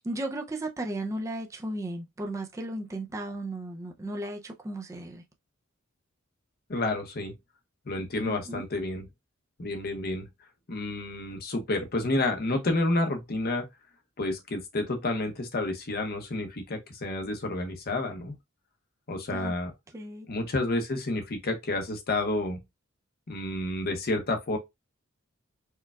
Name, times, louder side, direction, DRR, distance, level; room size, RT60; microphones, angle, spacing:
voice 1, 0.0-5.2 8.2-8.7 19.3-19.5 19.9-20.3, right 1 dB, 15° right, 0.4 m, -35 dB
voice 2, 6.7-7.3 7.9-9.1 9.6-10.3 10.7-13.6 14.2-18.3 19.1-19.7 20.3-22.6 23.3-24.6, left 2 dB, 45° left, 0.7 m, -30 dB
4.5 x 2.3 x 2.2 m
head